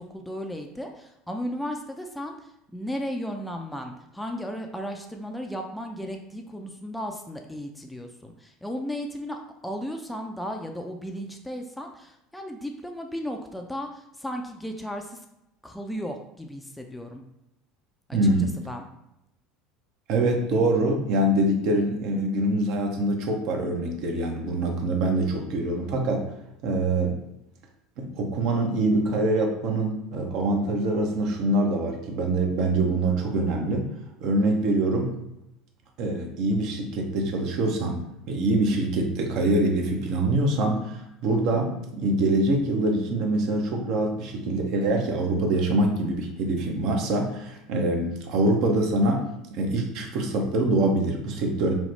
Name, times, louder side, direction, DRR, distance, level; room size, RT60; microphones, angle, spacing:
voice 1, 0.0-15.2 15.6-17.2 18.1-18.9, equal, 5° left, 3 dB, 0.3 m, -35 dB
voice 2, 18.1-18.5 20.1-26.3 26.6-27.2 28.0-33.9 34.2-35.1 36.0-51.8, right 2 dB, 55° right, 2 dB, 0.5 m, -24 dB
3.0 x 2.1 x 3.0 m, 0.85 s
figure-of-eight pair, 70°, 0 cm